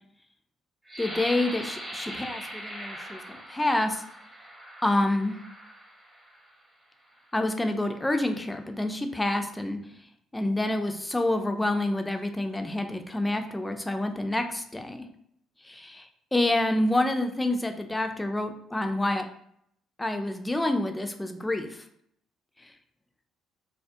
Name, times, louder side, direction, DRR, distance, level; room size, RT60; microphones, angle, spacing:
sound 1, 0.9-6.5 7.2-7.3 7.8-8.3, equal, 15° right, 0.7 m, -41 dB
voice 1, 1.0-4.0 4.8-5.4 7.3-9.8 10.3-15.1 15.6-19.2 20.0-21.8, left 1 dB, 15° left, 6 dB, 0.3 m, -28 dB
2.3 x 2.1 x 2.6 m, 0.70 s
hypercardioid pair, 50°, 0 cm